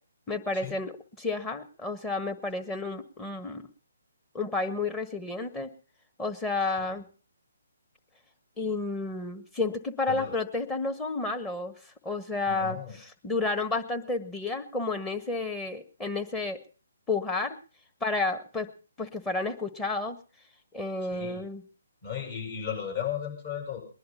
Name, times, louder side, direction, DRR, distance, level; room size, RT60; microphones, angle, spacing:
voice 1, 0.3-3.6 4.3-5.7 6.2-7.1 8.6-11.7 12.0-16.6 17.1-17.6 18.0-18.7 19.0-20.2 20.7-21.6, left 3 dB, 10° left, 3 dB, 1.5 m, -31 dB
voice 2, 12.5-13.0 21.1-21.4 22.0-23.8, left 8 dB, 40° left, 2 dB, 7.7 m, -35 dB
20.5 x 11.0 x 5.7 m, 0.39 s
figure-of-eight pair, 140°, 0 cm